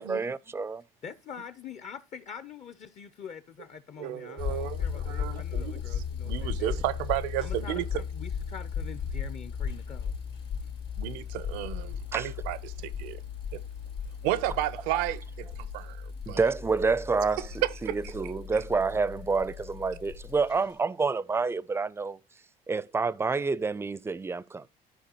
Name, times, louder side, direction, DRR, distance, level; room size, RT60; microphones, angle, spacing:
voice 1, 0.0-0.8 12.1-12.3 14.9-15.0 16.3-22.2 22.7-24.7, right 4 dB, 15° right, 0.4 m, -28 dB
voice 2, 1.0-6.7 7.4-10.1, left 7 dB, 40° left, 0.6 m, -44 dB
voice 3, 4.0-7.9 11.0-13.2 13.5-13.6 14.2-16.4 17.6-18.0, right 14 dB, 90° right, 0.7 m, -33 dB
sound 1, 4.4-20.7, left 7 dB, 85° left, 2.5 m, -36 dB
13.5 x 4.7 x 2.9 m
cardioid pair, 110°, 18 cm